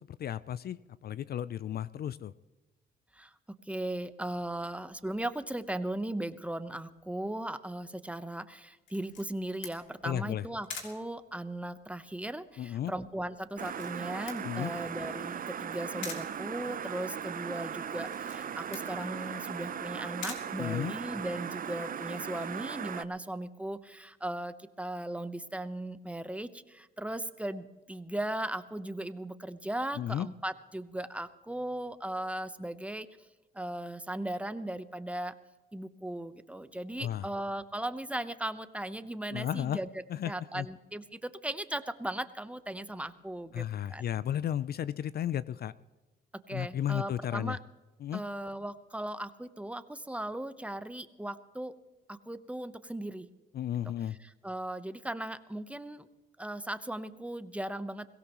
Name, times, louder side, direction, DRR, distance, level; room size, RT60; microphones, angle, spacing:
voice 1, 0.1-2.3 10.0-10.5 12.6-12.9 14.4-14.7 20.6-20.9 30.0-30.3 37.0-37.3 39.3-39.8 40.1-40.7 43.5-45.7 46.5-47.6 48.0-48.2 53.5-54.2, left 10 dB, 55° left, 17 dB, 0.4 m, -34 dB
voice 2, 3.6-33.1 33.5-35.3 35.7-39.9 40.3-43.6 43.9-44.0 46.5-47.6 48.1-51.7 52.1-53.3 54.2-56.1 56.4-58.1, right 1 dB, 5° right, 11 dB, 0.9 m, -37 dB
Camera, 8.9-21.4, left 5 dB, 70° left, 3.0 m, -48 dB
sound 1, 13.6-23.0, right 8 dB, 45° right, 0.7 m, -38 dB
22.0 x 17.0 x 3.1 m, 1.2 s
cardioid pair, 90°, 20 cm